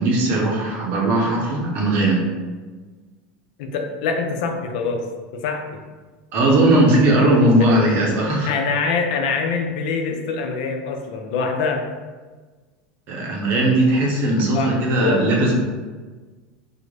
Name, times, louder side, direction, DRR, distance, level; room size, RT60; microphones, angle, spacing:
voice 1, 0.0-2.2 6.3-8.5 13.1-15.5, right 1 dB, 45° right, -1 dB, 0.8 m, -18 dB
voice 2, 3.6-5.0 5.3-5.6 8.5-11.8 14.5-14.7 15.0-15.2, left 4 dB, 75° left, 4 dB, 0.5 m, -24 dB
3.7 x 2.0 x 3.3 m, 1.4 s
supercardioid pair, 135°, 4 cm